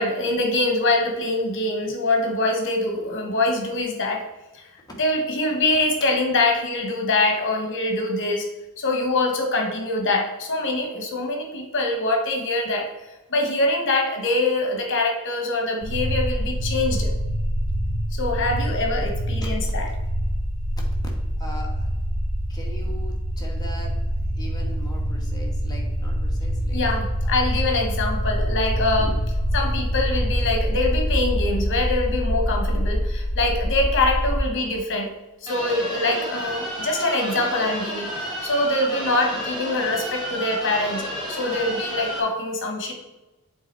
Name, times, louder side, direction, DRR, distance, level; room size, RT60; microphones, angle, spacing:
voice 1, 0.0-4.2 4.5-4.6 5.0-8.5 8.8-12.9 13.3-17.1 18.1-19.9 26.7-29.1 29.5-35.1 35.4-42.9, left 2 dB, 55° left, 2 dB, 1.3 m, -24 dB
sound 1, 15.8-34.4, equal, 75° right, 1.4 m, -25 dB
voice 2, 21.4-21.9 22.5-24.0 24.3-27.7 28.7-29.1, equal, 20° left, -2 dB, 1.4 m, -40 dB
sound 2, 35.5-42.2, equal, 20° right, 2.5 m, -31 dB
8.0 x 3.8 x 4.5 m, 1.1 s
head